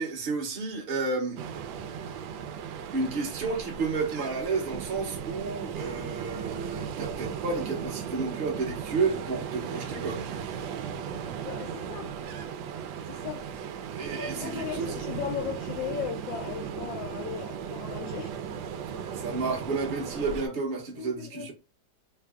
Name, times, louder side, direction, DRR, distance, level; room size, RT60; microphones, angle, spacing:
voice 1, 0.0-1.4 2.9-10.2 14.0-14.9 19.1-21.5, right 4 dB, 35° right, 0.9 m, -31 dB
Ocean, 1.4-20.5, right 7 dB, 85° right, 1.3 m, -36 dB
voice 2, 11.4-12.2 13.1-13.5 14.1-18.4 20.9-21.5, left 8 dB, 80° left, 1.4 m, -37 dB
3.5 x 2.2 x 3.6 m
omnidirectional pair, 2.0 m